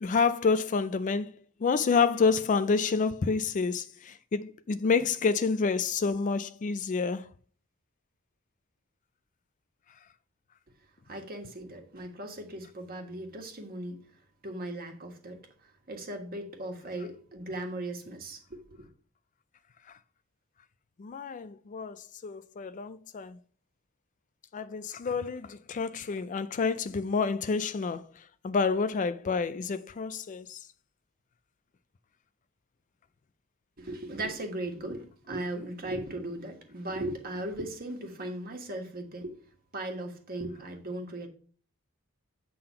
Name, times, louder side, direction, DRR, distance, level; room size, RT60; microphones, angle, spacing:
voice 1, 0.0-7.3 21.0-23.4 24.5-30.7, left 5 dB, 35° left, 0.3 m, -28 dB
voice 2, 11.1-14.1 14.4-15.4 15.9-18.9 33.8-39.3 39.7-41.3, right 1 dB, 40° right, 1.5 m, -37 dB
8.5 x 3.8 x 5.6 m
head